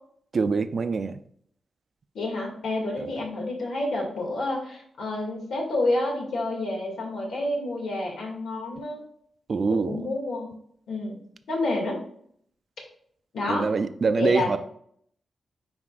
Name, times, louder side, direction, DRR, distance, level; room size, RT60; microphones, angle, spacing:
voice 1, 0.3-1.1 3.0-3.1 9.5-10.0 13.5-14.6, right 4 dB, 50° right, 11 dB, 0.5 m, -24 dB
voice 2, 2.1-9.0 9.7-10.5 10.9-11.2 11.5-12.0 13.3-13.7 14.1-14.6, left 2 dB, 85° left, -1 dB, 2.2 m, -29 dB
9.5 x 4.3 x 2.5 m, 0.65 s
wide cardioid pair, 115°, 0 cm